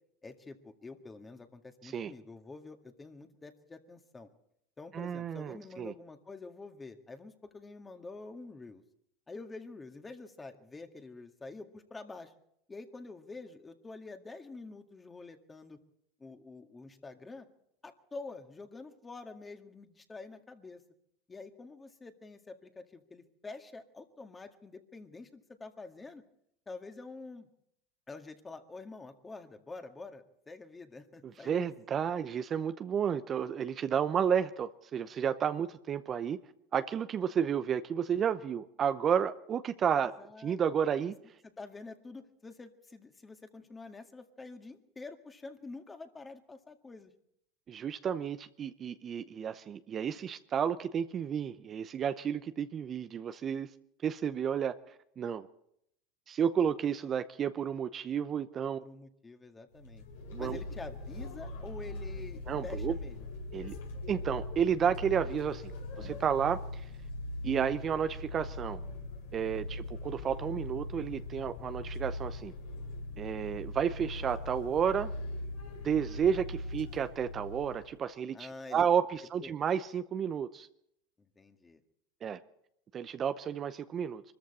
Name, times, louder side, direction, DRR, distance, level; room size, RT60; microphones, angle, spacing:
voice 1, 0.2-4.3 4.8-8.8 9.3-12.3 12.7-15.8 16.2-17.5 17.8-20.8 21.3-26.2 26.7-27.5 28.1-31.7 39.9-40.6 41.4-47.1 58.8-60.0 60.4-63.2 69.6-69.7 78.3-78.8 79.4-79.5 81.4-81.8, left 3 dB, 20° left, 1.9 m, -47 dB
voice 2, 4.9-5.9 31.4-36.4 36.7-41.2 47.7-53.7 54.0-54.8 55.2-55.5 56.3-58.8 60.3-60.6 62.5-62.9 63.5-63.7 64.1-65.7 66.0-66.9 67.4-68.8 69.3-72.5 73.2-75.1 75.8-80.7 82.2-82.4 82.9-84.2, right 8 dB, 35° right, 0.7 m, -31 dB
sound 1, 59.7-78.0, left 2 dB, 75° left, 4.3 m, -41 dB
24.0 x 14.0 x 4.3 m
hypercardioid pair, 90°, 0 cm